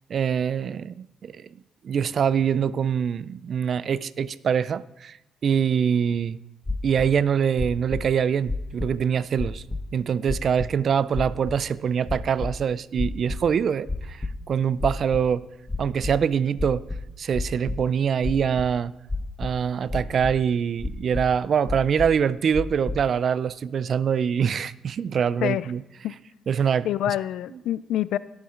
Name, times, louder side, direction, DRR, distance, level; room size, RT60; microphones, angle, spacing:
voice 1, 0.1-1.5 1.8-5.2 5.4-6.4 6.8-9.6 9.9-15.5 15.8-16.9 17.2-18.9 19.4-25.8 26.5-26.9, right 7 dB, 60° right, 0.4 m, -24 dB
sound 1, 6.6-7.1 7.6-8.0 8.5-9.0 9.4-9.8 10.3-10.7 11.1-11.5 12.1-12.5 13.0-13.5 13.9-14.3 14.8-15.3 15.7-16.1 16.6-17.8 18.2-18.7 19.1-19.6 19.9-20.4 20.8-21.2 21.7-22.2 22.5-23.0, left 2 dB, 15° left, 1.2 m, -30 dB
voice 2, 26.8-28.2, left 12 dB, 75° left, 0.4 m, -26 dB
18.0 x 7.1 x 3.7 m
supercardioid pair, 60°, 0 cm